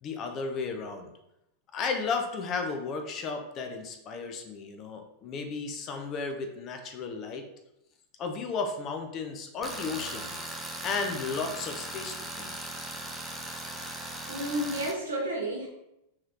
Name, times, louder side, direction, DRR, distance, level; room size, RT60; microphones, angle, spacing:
voice 1, 0.0-1.1 1.7-7.4 8.2-10.4 10.8-12.5, left 4 dB, 35° left, 5 dB, 0.7 m, -34 dB
Tools, 9.6-14.9, right 1 dB, 5° right, 0.7 m, -38 dB
voice 2, 14.3-15.7, right 1 dB, 75° right, -3 dB, 1.5 m, -31 dB
5.6 x 3.2 x 3.0 m, 0.86 s
figure-of-eight pair, 90°, 0 cm